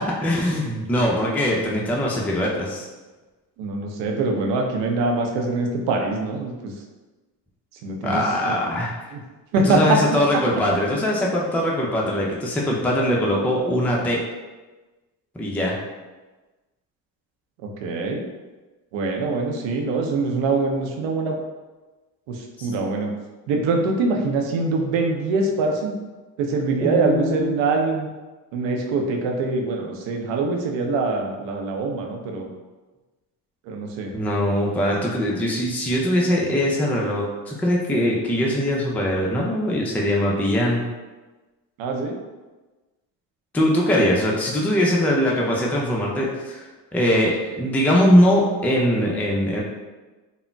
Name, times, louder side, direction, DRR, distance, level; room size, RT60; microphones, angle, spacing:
voice 1, 0.2-2.9 8.0-8.9 9.6-14.2 15.3-15.8 22.6-22.7 26.8-27.8 34.1-40.8 43.5-49.6, equal, 5° left, -3 dB, 0.4 m, -21 dB
voice 2, 3.6-6.7 7.8-8.6 9.1-9.2 9.5-10.0 17.6-18.2 18.9-21.4 22.3-23.1 23.5-25.9 26.4-28.1 28.5-32.5 33.7-34.1 41.8-42.2, right 3 dB, 70° right, 2 dB, 0.6 m, -24 dB
3.6 x 2.1 x 2.2 m, 1.2 s
hypercardioid pair, 60°, 46 cm